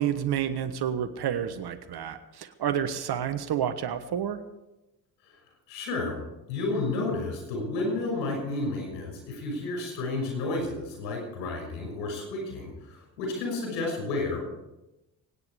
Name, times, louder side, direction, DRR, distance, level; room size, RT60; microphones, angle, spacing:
voice 1, 0.0-4.4, right 9 dB, 50° right, 10 dB, 1.4 m, -29 dB
voice 2, 5.7-6.2 6.5-14.4, left 2 dB, 80° left, 1 dB, 6.2 m, -31 dB
23.5 x 9.6 x 4.9 m, 0.97 s
hypercardioid pair, 50°, 49 cm